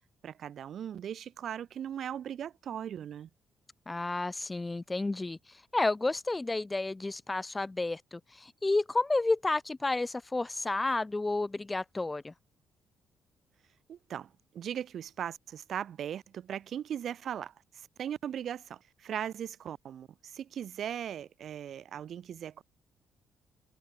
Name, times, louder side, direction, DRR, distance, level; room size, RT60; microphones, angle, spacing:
voice 1, 0.2-3.3 13.9-22.6, right 9 dB, 65° right, 7.0 m, -39 dB
voice 2, 3.9-12.3, left 2 dB, 20° left, 1.0 m, -31 dB
cardioid pair, 90°, 0 cm